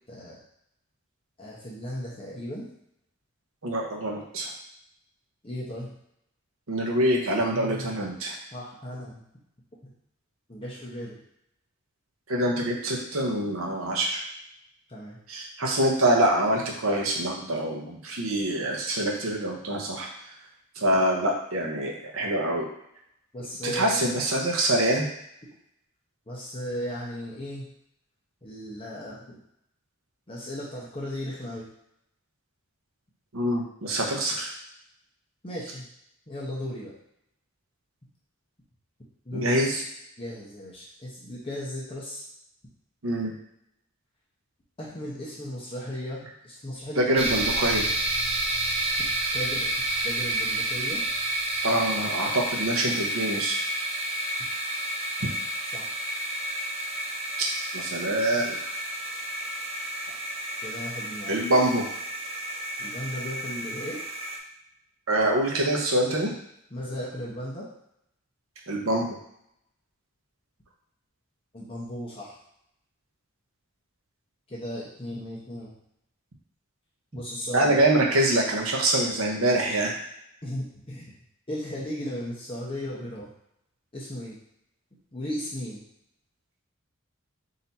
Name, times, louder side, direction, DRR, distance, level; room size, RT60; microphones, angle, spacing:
voice 1, 0.1-0.4 1.4-2.7 5.4-5.9 7.5-8.0 8.5-9.2 10.5-11.2 14.9-15.2 23.3-24.1 26.3-27.7 28.4-29.4 30.3-31.7 35.4-35.9 36.3-36.9 39.2-39.7 40.2-42.2 44.8-47.3 49.3-51.0 55.7-55.9 60.6-61.3 62.8-64.0 66.7-67.7 71.5-72.3 74.5-75.7 77.1-77.8 80.4-81.1 81.5-83.3 83.9-84.4 85.1-85.8, equal, 25° left, -6 dB, 1.0 m, -36 dB
voice 2, 3.6-4.5 6.7-8.4 12.3-14.2 15.3-20.1 20.8-22.7 23.6-25.1 33.3-34.5 39.3-39.8 43.0-43.3 47.0-47.9 51.6-53.6 55.2-55.3 57.4-57.5 57.7-58.6 61.3-61.9 65.1-66.3 68.7-69.2 77.5-79.9, right 1 dB, 85° right, 0 dB, 0.9 m, -25 dB
sound 1, 47.2-64.4, right 1 dB, 30° right, 0.5 m, -30 dB
4.0 x 2.8 x 4.1 m, 0.76 s
head